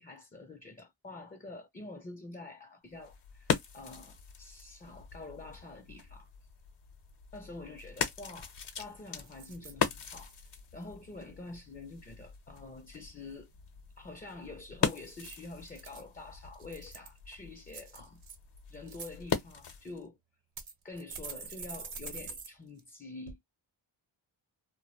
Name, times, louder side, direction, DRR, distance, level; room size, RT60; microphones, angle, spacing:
voice 1, 0.0-6.3 7.3-10.3 10.7-13.5 14.0-18.2 18.7-20.2 20.8-23.4, left 2 dB, 20° left, 0.4 m, -47 dB
sound 1, 2.9-20.0, left 7 dB, 55° left, 0.7 m, -39 dB
sound 2, 8.4-8.7 9.2-9.7 10.2-10.6 15.0-16.0 16.5-17.2 17.7-18.4 18.7-19.1 19.9-20.0 20.6-22.5 22.8-22.9 23.3-23.4, right 5 dB, 75° right, 0.8 m, -45 dB
2.1 x 2.0 x 3.0 m
cardioid pair, 60°, 49 cm